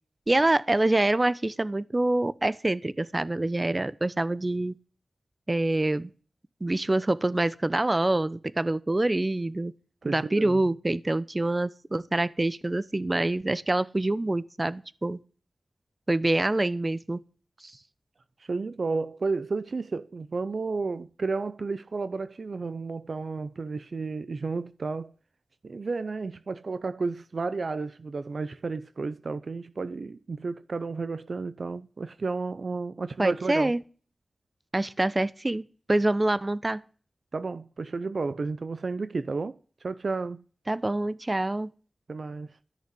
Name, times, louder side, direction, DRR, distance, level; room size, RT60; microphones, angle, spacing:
voice 1, 0.3-4.8 5.5-6.1 6.6-9.7 10.0-15.2 16.1-17.2 33.2-33.8 34.7-35.6 35.9-36.8 40.7-41.7, right 2 dB, 35° right, 0.8 m, -26 dB
voice 2, 10.0-10.6 18.4-25.1 25.6-33.7 37.3-39.6 39.8-40.4 42.1-42.5, right 4 dB, 70° right, 0.6 m, -32 dB
13.5 x 6.6 x 8.3 m
cardioid pair, 45°, 0 cm